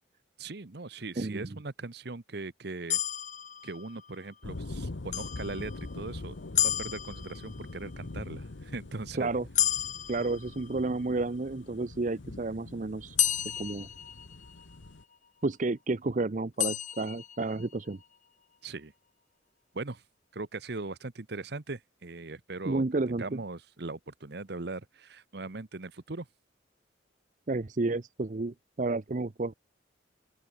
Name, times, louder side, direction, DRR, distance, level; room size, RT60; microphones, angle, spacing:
voice 1, 0.4-3.0 3.6-9.3 18.6-18.9 19.7-20.0 20.3-22.8 23.2-26.2, right 3 dB, 60° right, 1.0 m, -40 dB
voice 2, 1.2-1.6 9.1-9.5 10.1-13.2 13.6-13.9 15.4-18.0 22.6-23.4 27.5-29.5, right 3 dB, 40° right, 0.6 m, -31 dB
sound 1, 2.9-4.2 5.1-6.0 6.5-7.8 9.5-11.1 13.2-14.8 16.6-17.8, left 12 dB, 40° left, 2.0 m, -32 dB
sound 2, 4.4-15.0, left 2 dB, 80° left, 1.0 m, -43 dB
open air
head